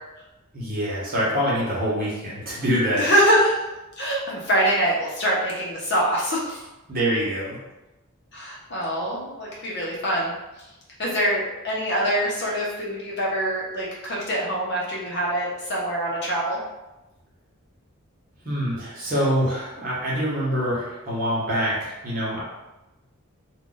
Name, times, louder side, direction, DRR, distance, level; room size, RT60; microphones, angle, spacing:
voice 1, 0.5-3.1 6.9-7.6 18.4-22.4, equal, 40° right, -7 dB, 1.0 m, -25 dB
voice 2, 3.0-3.5 4.0-6.6 8.3-10.3 11.0-16.6, equal, 50° left, -5 dB, 0.8 m, -24 dB
2.5 x 2.5 x 3.9 m, 1.0 s
head